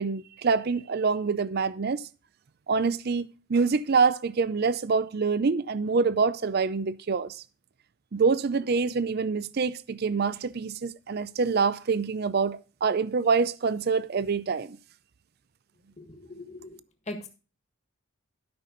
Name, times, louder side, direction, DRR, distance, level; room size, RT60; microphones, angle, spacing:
voice 1, 0.0-2.0 2.7-7.4 8.1-14.8, right 5 dB, 50° right, 0.5 m, -26 dB
voice 2, 16.0-16.8 17.1-17.3, left 2 dB, 35° left, 1.6 m, -40 dB
12.0 x 5.9 x 3.9 m
head